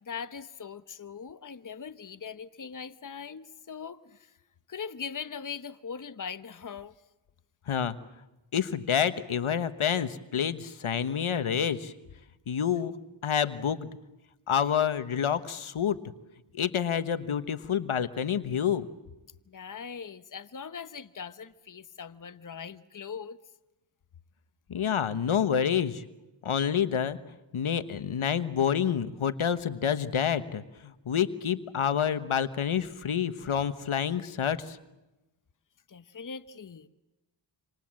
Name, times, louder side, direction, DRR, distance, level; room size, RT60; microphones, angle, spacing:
voice 1, 0.0-4.3 4.7-6.9 19.5-23.4 35.9-36.9, left 6 dB, 40° left, 11 dB, 1.1 m, -41 dB
voice 2, 8.5-11.9 12.5-12.9 13.2-13.9 14.5-16.0 16.5-18.9 24.7-26.0 26.4-27.2 27.5-34.8, left 8 dB, 75° left, 12 dB, 1.3 m, -28 dB
27.0 x 26.5 x 7.6 m, 1.0 s
cardioid pair, 55°, 50 cm